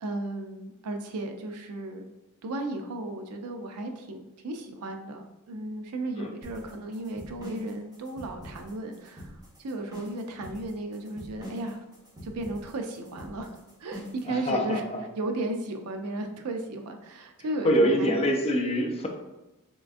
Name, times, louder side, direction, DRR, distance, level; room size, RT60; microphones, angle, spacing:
voice 1, 0.0-2.1 2.4-11.8 12.2-14.8 15.2-18.1, right 2 dB, 80° right, 5 dB, 0.5 m, -35 dB
sound 1, 6.4-14.3, equal, 20° right, 1.2 m, -44 dB
voice 2, 14.3-15.0 17.6-19.1, equal, 25° left, 1 dB, 0.5 m, -25 dB
3.6 x 3.2 x 2.5 m, 0.99 s
head